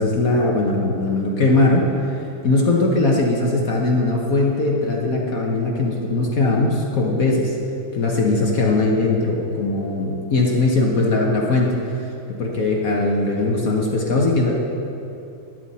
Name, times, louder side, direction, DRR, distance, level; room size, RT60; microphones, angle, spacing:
voice 1, 0.0-7.6 7.9-11.7 12.4-14.5, left 2 dB, 55° left, -1 dB, 1.4 m, -20 dB
12.0 x 9.1 x 4.2 m, 2.9 s
omnidirectional pair, 1.9 m